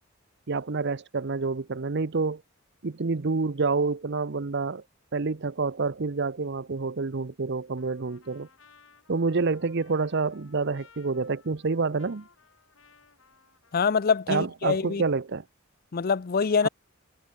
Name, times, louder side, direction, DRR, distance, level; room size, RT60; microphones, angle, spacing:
voice 1, 0.5-2.4 2.8-4.8 5.1-8.5 9.1-12.3 14.3-15.4 16.6-16.7, right 4 dB, 55° right, 0.7 m, -28 dB
Trumpet, 7.8-14.4, left 5 dB, 70° left, 4.8 m, -59 dB
voice 2, 13.7-15.0 15.9-16.7, left 5 dB, 45° left, 0.5 m, -24 dB
head